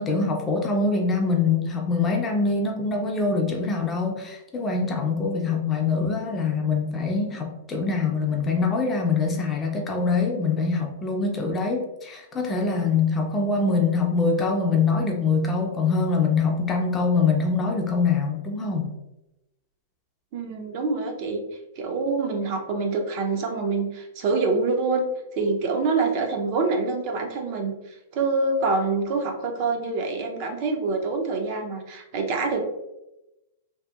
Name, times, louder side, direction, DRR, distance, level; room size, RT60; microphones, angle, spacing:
voice 1, 0.0-18.9, left 4 dB, 15° left, 1 dB, 0.4 m, -24 dB
voice 2, 20.3-21.4 21.8-25.1 25.3-32.6, right 3 dB, 45° right, 3 dB, 0.5 m, -26 dB
2.7 x 2.6 x 2.3 m, 0.93 s
hypercardioid pair, 150°, 0 cm